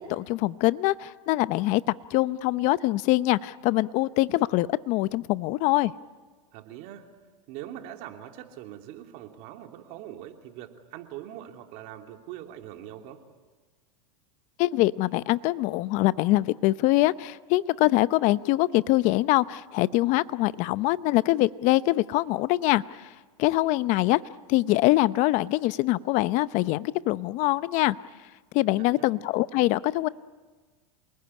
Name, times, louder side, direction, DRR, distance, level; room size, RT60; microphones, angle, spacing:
voice 1, 0.1-5.9 14.6-23.1 23.4-24.2 24.5-28.0 28.5-30.1, left 18 dB, 45° left, 16 dB, 0.8 m, -24 dB
voice 2, 6.5-7.1 7.5-13.2 23.8-23.9 28.7-29.1, right 12 dB, 50° right, 4 dB, 3.0 m, -42 dB
28.0 x 20.0 x 9.8 m, 1.4 s
supercardioid pair, 130°, 17 cm